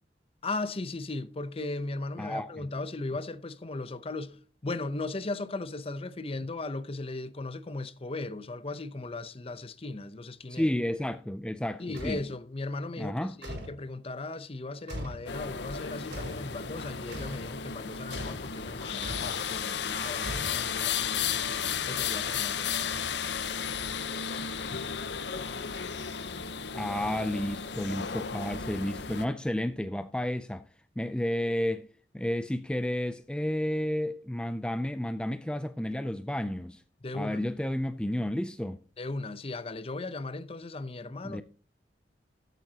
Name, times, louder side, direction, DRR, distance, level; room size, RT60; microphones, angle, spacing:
voice 1, 0.4-10.7 11.8-21.5 21.9-22.7 37.0-37.4 39.0-41.4, left 2 dB, 35° left, 0.7 m, -37 dB
voice 2, 2.2-2.7 10.5-12.2 13.0-13.4 26.7-30.6 31.0-31.9 32.1-36.8 37.1-38.8 41.2-41.4, left 1 dB, 5° left, 0.3 m, -31 dB
sound 1, 11.9-12.3 13.4-13.8 14.9-15.3 16.1-16.5 17.1-17.4 18.1-18.5 19.0-19.4 20.2-20.9, equal, 75° right, 4.7 m, -39 dB
sound 2, 15.3-29.3, left 7 dB, 75° left, 0.8 m, -34 dB
13.5 x 9.2 x 2.8 m
head